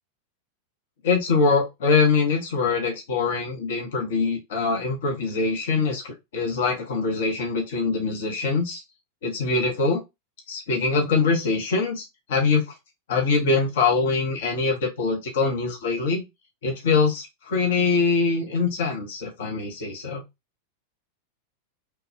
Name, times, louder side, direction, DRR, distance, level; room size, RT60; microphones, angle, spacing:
voice 1, 1.0-8.8 9.2-10.0 10.5-12.6 13.1-16.2 16.6-20.2, left 4 dB, 60° left, 2 dB, 0.8 m, -23 dB
3.1 x 2.3 x 3.2 m, 0.21 s
figure-of-eight pair, 90°, 0 cm